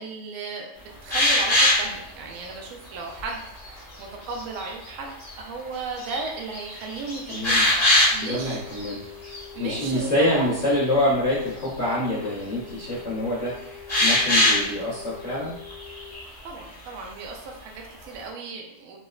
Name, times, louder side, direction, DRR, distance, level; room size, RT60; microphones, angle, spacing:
voice 1, 0.0-9.1 9.5-10.5 16.4-19.0, right 4 dB, 80° right, 0 dB, 1.4 m, -36 dB
sound 1, 1.1-1.9 2.5-2.6 3.2-3.7 4.2-4.7 5.2-5.3 5.8-6.2 6.5-8.4 8.7-8.9 9.2-9.4 13.9-14.7 15.7-16.2, left 1 dB, 10° left, 0.9 m, -21 dB
voice 2, 7.3-7.7 8.2-9.0 9.6-13.5 14.0-15.5, left 1 dB, 45° left, -11 dB, 0.9 m, -25 dB
sound 2, 8.2-16.1, left 8 dB, 90° left, 1.4 m, -44 dB
4.1 x 2.1 x 2.3 m, 0.75 s
omnidirectional pair, 2.3 m